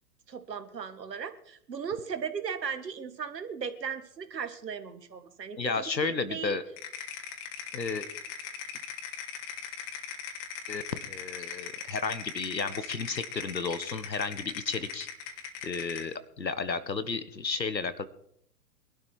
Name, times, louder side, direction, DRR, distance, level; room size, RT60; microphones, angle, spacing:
voice 1, 0.3-6.6, right 6 dB, 75° right, 11 dB, 2.0 m, -37 dB
voice 2, 5.6-6.6 7.7-8.1 10.7-15.1 15.6-18.0, left 4 dB, 90° left, 14 dB, 1.6 m, -32 dB
sound 1, 6.8-16.1, left 7 dB, 45° left, 2.9 m, -40 dB
22.0 x 12.5 x 4.6 m, 0.67 s
figure-of-eight pair, 115°, 50 cm